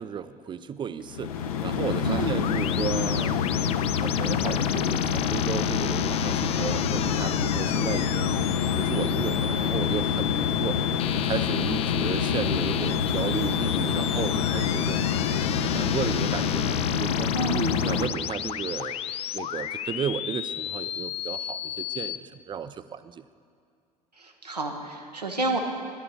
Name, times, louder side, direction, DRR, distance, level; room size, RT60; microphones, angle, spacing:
voice 1, 0.0-1.3 1.6-3.4 4.0-8.3 8.8-10.8 11.1-15.0 15.6-17.3 17.8-19.1 19.3-23.2, right 7 dB, 25° right, 13 dB, 0.5 m, -34 dB
sound 1, 1.1-18.1, left 7 dB, 65° left, 0.7 m, -26 dB
voice 2, 2.0-2.4 17.3-17.8 24.2-25.6, right 3 dB, 90° right, 1 dB, 1.1 m, -29 dB
sound 2, 2.4-22.2, left 10 dB, 30° left, 0.4 m, -33 dB
10.5 x 7.3 x 8.8 m, 2.2 s
figure-of-eight pair, 70°, 20 cm